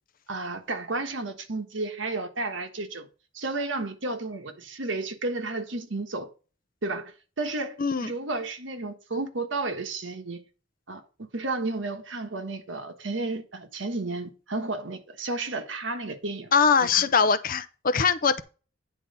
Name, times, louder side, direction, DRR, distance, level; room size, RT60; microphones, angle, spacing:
voice 1, 0.3-3.1 3.3-6.3 6.8-7.8 8.0-10.5 10.9-11.0 11.3-16.5 16.8-17.0, right 2 dB, 70° right, 1.4 m, -32 dB
voice 2, 7.8-8.1 16.5-18.4, left 6 dB, 45° left, 0.6 m, -22 dB
10.0 x 3.8 x 6.6 m
head